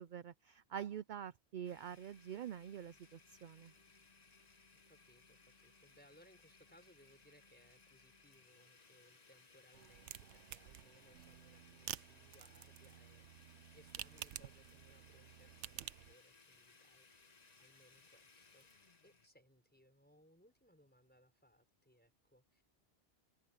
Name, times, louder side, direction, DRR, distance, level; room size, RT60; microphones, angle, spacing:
voice 1, 0.0-3.7, right 9 dB, 55° right, 0.6 m, -46 dB
Domestic sounds home sounds, 1.6-19.3, left 4 dB, 35° left, 1.3 m, -65 dB
voice 2, 4.9-22.6, equal, 10° left, 5.0 m, -68 dB
sound 1, 9.7-16.1, right 12 dB, 80° right, 0.9 m, -51 dB
open air
omnidirectional pair, 1.2 m